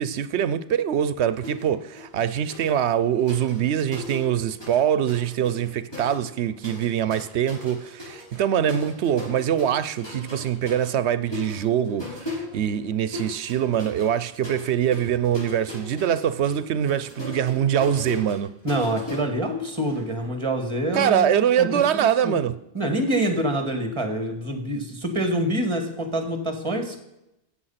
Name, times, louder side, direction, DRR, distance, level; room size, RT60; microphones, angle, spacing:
voice 1, 0.0-18.5 20.9-22.5, right 9 dB, 85° right, 0.9 m, -23 dB
sound 1, 1.4-1.7 2.0-4.8 5.1-20.0, left 2 dB, 20° left, 6.0 m, -38 dB
voice 2, 18.6-22.4 22.7-27.0, right 1 dB, 25° right, 2.1 m, -26 dB
14.5 x 8.4 x 5.7 m
omnidirectional pair, 1.1 m